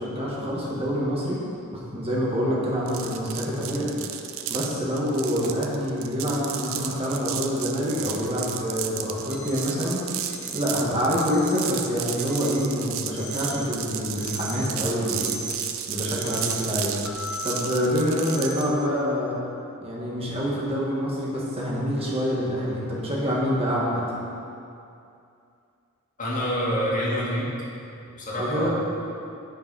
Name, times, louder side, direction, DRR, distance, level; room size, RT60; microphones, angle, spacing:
voice 1, 0.0-1.4 1.7-3.9 4.5-10.0 10.5-15.4 15.9-16.9 17.4-19.4 19.8-24.0 28.4-28.7, equal, 30° right, -5 dB, 1.4 m, -26 dB
sound 1, 2.9-18.7, right 10 dB, 70° right, 0.5 m, -33 dB
sound 2, 9.3-9.6 10.2-10.6 11.2-11.6 12.2-12.6 13.2-13.6 14.2-14.6 15.2-15.6 16.2-16.6 17.2-17.6 18.2-18.6, right 4 dB, 5° right, 1.1 m, -38 dB
Keyboard (musical), 17.0-19.4, left 6 dB, 85° left, 0.5 m, -39 dB
voice 2, 26.2-27.5 28.2-28.7, equal, 40° left, -6 dB, 1.9 m, -26 dB
9.3 x 5.1 x 5.3 m, 2.6 s
head